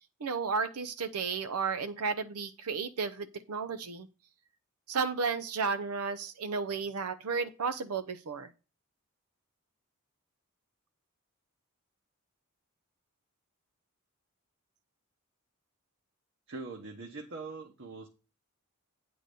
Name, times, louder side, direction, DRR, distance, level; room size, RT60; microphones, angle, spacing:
voice 1, 0.2-4.1 4.9-8.5, right 5 dB, 90° right, 10 dB, 0.6 m, -33 dB
voice 2, 16.5-18.1, right 3 dB, 55° right, 2 dB, 1.1 m, -42 dB
9.0 x 3.9 x 6.7 m, 0.32 s
head